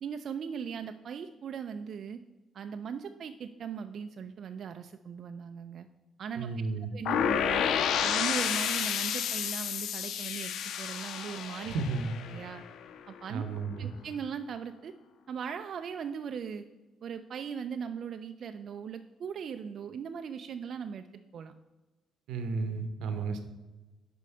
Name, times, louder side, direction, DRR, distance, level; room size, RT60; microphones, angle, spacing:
voice 1, 0.0-2.2 2.5-5.9 6.2-6.5 6.8-7.7 8.0-11.7 12.3-12.6 13.1-13.4 13.8-14.9 15.3-16.6 17.0-21.1 21.3-21.5, right 7 dB, 60° right, 7 dB, 0.3 m, -39 dB
voice 2, 6.4-6.9 11.7-12.1 13.3-13.9 22.3-23.4, right 4 dB, 80° right, 8 dB, 0.7 m, -33 dB
sound 1, 7.1-12.9, left 8 dB, 75° left, 0.4 m, -31 dB
5.1 x 4.9 x 5.5 m, 1.2 s
supercardioid pair, 70°, 0 cm